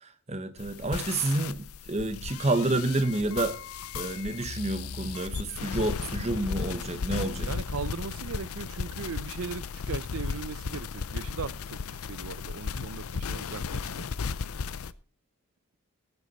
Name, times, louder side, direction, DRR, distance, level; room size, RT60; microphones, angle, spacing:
voice 1, 0.0-3.6 3.9-7.5, right 2 dB, 30° right, 0.9 m, -29 dB
sound 1, 0.6-14.9, left 5 dB, 75° left, 0.5 m, -35 dB
voice 2, 7.4-11.8 12.1-14.1, right 5 dB, 70° right, 0.5 m, -38 dB
18.0 x 8.1 x 4.1 m
head